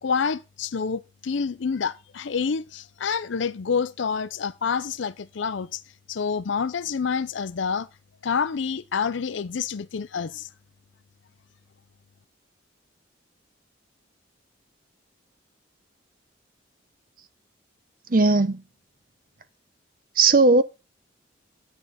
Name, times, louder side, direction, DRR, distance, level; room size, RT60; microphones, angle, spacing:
voice 1, 0.0-5.8 6.1-7.9 8.2-10.5, left 6 dB, 70° left, 0.5 m, -28 dB
voice 2, 18.1-18.6 20.2-20.6, right 3 dB, 45° right, 0.8 m, -17 dB
11.5 x 8.3 x 4.1 m
head